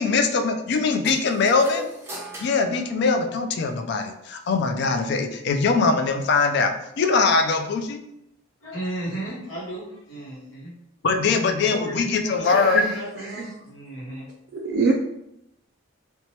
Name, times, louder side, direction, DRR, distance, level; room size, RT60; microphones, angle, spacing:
voice 1, 0.0-1.9 2.4-8.0 11.0-12.8, left 4 dB, 55° left, 6 dB, 0.3 m, -22 dB
sound 1, 1.0-3.7, left 1 dB, 10° right, 0.7 m, -39 dB
voice 2, 8.6-10.7 11.7-14.3, right 1 dB, 75° left, -8 dB, 0.9 m, -34 dB
voice 3, 12.4-12.9 13.3-13.4 14.5-14.9, right 4 dB, 55° right, -1 dB, 0.3 m, -24 dB
2.8 x 2.1 x 3.0 m, 0.80 s
head